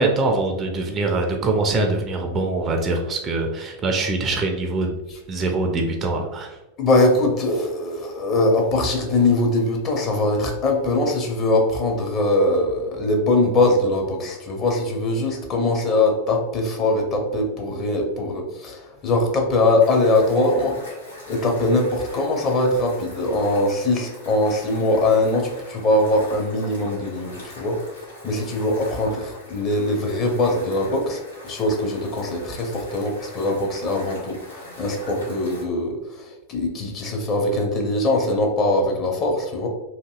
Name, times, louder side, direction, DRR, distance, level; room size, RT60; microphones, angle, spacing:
voice 1, 0.0-4.9 5.3-6.6, right 2 dB, 25° right, 3 dB, 0.4 m, -23 dB
voice 2, 6.8-20.8 21.3-39.7, left 2 dB, 30° left, 1 dB, 0.6 m, -22 dB
sound 1, 19.8-35.6, left 1 dB, 75° left, 0.9 m, -42 dB
2.8 x 2.6 x 2.2 m, 1.0 s
figure-of-eight pair, 90°, 0 cm